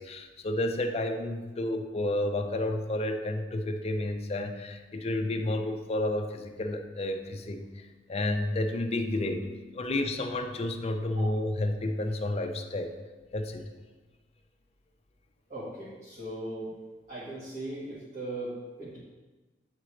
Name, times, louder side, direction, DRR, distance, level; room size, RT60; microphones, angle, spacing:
voice 1, 0.0-9.5 9.7-12.9 13.3-13.7, left 1 dB, 35° left, 5 dB, 0.5 m, -31 dB
voice 2, 15.5-16.7 17.1-19.0, right 1 dB, 45° right, -11 dB, 1.6 m, -38 dB
8.4 x 3.8 x 3.2 m, 1.2 s
head